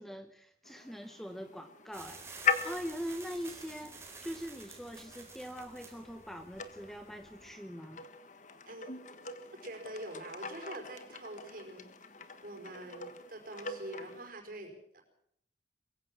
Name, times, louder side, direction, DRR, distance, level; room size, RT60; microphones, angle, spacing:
voice 1, 0.0-8.0, equal, ahead, 8 dB, 1.0 m, -43 dB
sound 1, 0.6-14.3, left 5 dB, 45° left, 1.4 m, -41 dB
sound 2, 1.9-7.5, right 4 dB, 15° right, 4.2 m, -51 dB
voice 2, 9.6-11.9 12.4-15.0, right 1 dB, 50° right, 4 dB, 5.0 m, -45 dB
22.5 x 16.0 x 7.5 m, 0.71 s
head